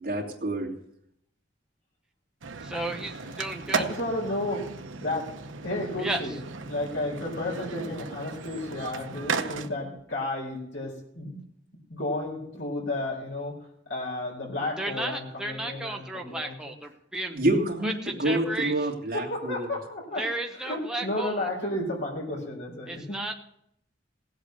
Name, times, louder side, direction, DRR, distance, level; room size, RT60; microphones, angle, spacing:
voice 1, 0.1-0.7 17.3-19.7, right 1 dB, 50° right, -2 dB, 2.8 m, -27 dB
sound 1, 2.4-9.7, right 4 dB, 85° right, 0.9 m, -35 dB
voice 2, 2.6-3.8 6.0-6.4 14.8-17.4 17.8-18.7 20.2-21.5 22.9-23.3, right 2 dB, 5° right, 2 dB, 0.8 m, -33 dB
voice 3, 3.7-4.7 5.0-5.3 5.6-6.4 6.7-11.4 11.9-13.5 13.9-16.6 16.8-16.9 19.1-23.2, left 2 dB, 80° left, -2 dB, 4.7 m, -32 dB
17.5 x 8.2 x 6.6 m, 0.73 s
head